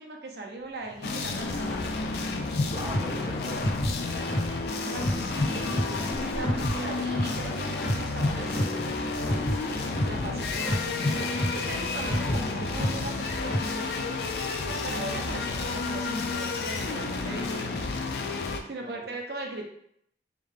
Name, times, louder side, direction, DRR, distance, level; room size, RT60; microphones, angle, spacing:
voice 1, 0.0-1.7 4.7-9.5 10.0-17.7 18.7-19.6, right 2 dB, 65° right, 1 dB, 0.6 m, -39 dB
Drawer open or close, 0.6-8.3 8.7-8.8, equal, ahead, 1.1 m, -46 dB
sound 1, 1.0-18.6, left 3 dB, 65° left, 0.4 m, -31 dB
sound 2, 2.6-13.8, equal, 20° left, 1.3 m, -31 dB
voice 2, 2.8-4.2 5.0-5.2 18.8-19.2, right 1 dB, 25° right, -1 dB, 0.4 m, -43 dB
3.6 x 2.7 x 3.5 m, 0.71 s
head